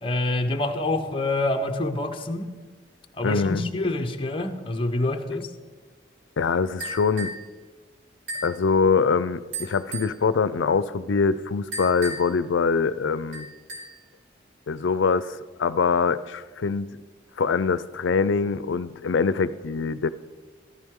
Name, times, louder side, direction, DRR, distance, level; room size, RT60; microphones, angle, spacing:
voice 1, 0.0-2.5 3.1-5.5, left 2 dB, 25° left, 0.7 m, -26 dB
voice 2, 3.2-3.6 6.4-7.3 8.4-13.5 14.7-16.9 17.4-20.1, left 5 dB, 75° left, 0.4 m, -23 dB
sound 1, 6.8-7.5 8.3-8.6 9.5-10.2 11.7-12.4 13.3-14.0, right 2 dB, 75° right, 3.4 m, -35 dB
14.0 x 13.5 x 3.7 m
head